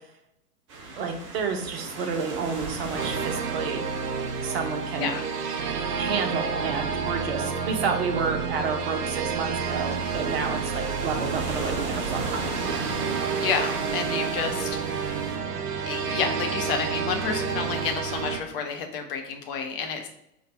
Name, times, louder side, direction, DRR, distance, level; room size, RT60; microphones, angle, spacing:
sound 1, 0.7-15.4, right 3 dB, 20° right, 0.4 m, -38 dB
voice 1, 0.9-3.9 4.4-5.1 6.0-12.6, right 5 dB, 40° right, 4 dB, 0.8 m, -30 dB
sound 2, 3.0-18.4, right 6 dB, 75° right, 0.7 m, -30 dB
voice 2, 13.4-15.4 15.8-20.1, left 6 dB, 35° left, 4 dB, 0.8 m, -30 dB
4.8 x 2.4 x 4.5 m, 0.79 s
figure-of-eight pair, 100°, 48 cm